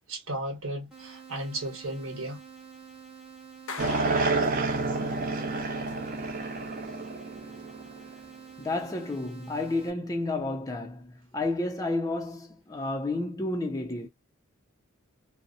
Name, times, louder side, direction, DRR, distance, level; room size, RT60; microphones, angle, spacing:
voice 1, 0.1-2.4, right 1 dB, 80° right, 1.1 m, -35 dB
sound 1, 0.9-9.9, right 7 dB, 5° right, 0.9 m, -48 dB
Clapping, 3.7-5.3, left 4 dB, 80° left, 0.6 m, -42 dB
sound 2, 3.8-8.1, right 3 dB, 40° right, 0.6 m, -29 dB
voice 2, 8.6-14.1, left 2 dB, 15° left, 0.4 m, -31 dB
2.6 x 2.0 x 2.5 m
head